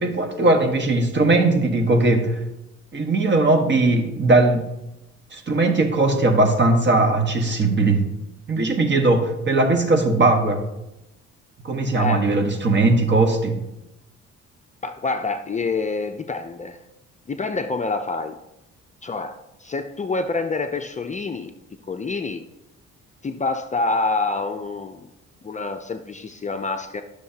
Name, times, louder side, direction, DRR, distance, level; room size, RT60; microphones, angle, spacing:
voice 1, 0.0-2.4 2.9-4.7 5.3-8.0 8.5-10.6 11.6-13.5, right 2 dB, 35° right, 5 dB, 1.4 m, -19 dB
voice 2, 12.0-12.3 14.8-16.8 17.3-18.4 19.0-21.5 21.9-22.5 23.2-25.1 25.4-27.0, left 3 dB, 25° left, 6 dB, 0.5 m, -27 dB
12.5 x 6.5 x 2.8 m, 0.92 s
cardioid pair, 90°, 30 cm